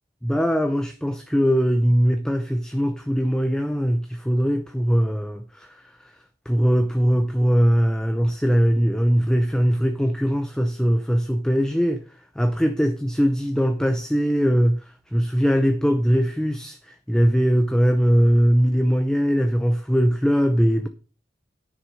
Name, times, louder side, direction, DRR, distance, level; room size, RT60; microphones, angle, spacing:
voice 1, 0.3-5.7 6.5-12.0 12.4-14.8 15.1-20.9, equal, 5° left, 0.7 m, -21 dB
10.5 x 6.3 x 5.5 m
head